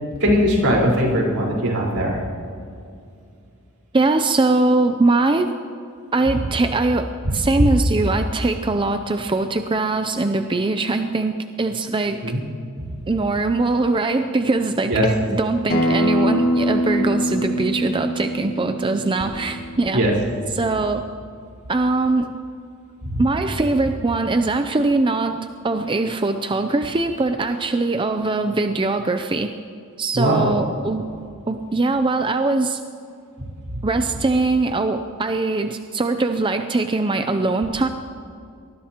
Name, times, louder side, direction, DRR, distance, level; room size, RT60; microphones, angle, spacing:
voice 1, 0.2-2.2 12.2-12.4 14.9-15.0 19.9-20.1 23.0-23.2 30.1-30.5, equal, 75° right, -3 dB, 4.6 m, -19 dB
voice 2, 3.9-5.5 6.1-12.2 13.1-20.1 20.5-21.1 21.7-22.4 23.2-25.4 25.6-29.5 30.0-31.1 31.5-32.8 33.8-37.9, right 3 dB, 25° right, 7 dB, 0.5 m, -21 dB
Acoustic guitar, 15.7-20.9, equal, 45° left, 2.0 m, -23 dB
24.5 x 20.0 x 3.0 m, 2.4 s
head